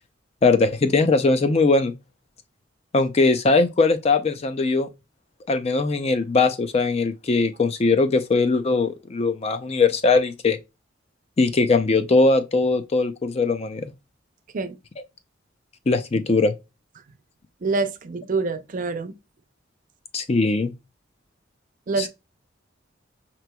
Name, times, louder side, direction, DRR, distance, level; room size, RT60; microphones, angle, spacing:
voice 1, 0.4-1.9 2.9-4.9 5.5-10.6 11.4-13.9 15.9-16.6 20.1-20.7 22.0-22.1, left 3 dB, 30° left, 0.4 m, -20 dB
voice 2, 17.6-19.1 21.9-22.1, right 3 dB, 45° right, 0.5 m, -26 dB
5.8 x 3.0 x 2.2 m
head